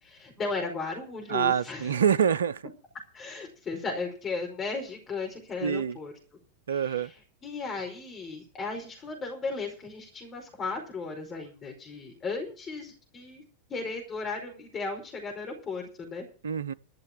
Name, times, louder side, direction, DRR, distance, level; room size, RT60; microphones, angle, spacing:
voice 1, 0.0-2.0 3.1-6.1 6.7-7.1 7.4-13.4 13.7-16.3, left 4 dB, 25° left, 5.0 m, -35 dB
voice 2, 1.3-2.6 5.6-6.0 6.7-7.1 16.4-16.7, right 8 dB, 65° right, 0.6 m, -26 dB
13.5 x 6.7 x 9.1 m
figure-of-eight pair, 90°, 0 cm